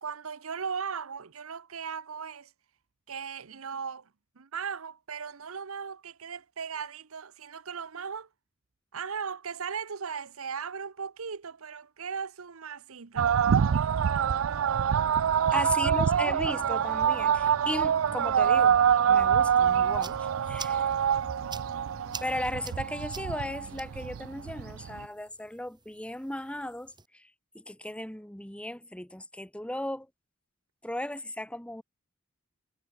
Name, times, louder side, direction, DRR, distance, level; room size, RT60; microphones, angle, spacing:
voice 1, 0.0-2.5 3.1-4.1 4.4-8.3 8.9-13.3 15.5-16.1, right 6 dB, 85° right, 0.9 m, -37 dB
sound 1, 13.2-25.0, right 8 dB, 70° right, 0.4 m, -25 dB
voice 2, 15.5-18.8 19.1-20.9 22.2-26.9 27.5-30.1 30.8-31.8, left 1 dB, 5° left, 1.4 m, -36 dB
sound 2, 16.5-23.5, equal, 30° left, 7.7 m, -51 dB
sound 3, 19.6-27.1, right 5 dB, 20° right, 2.4 m, -48 dB
head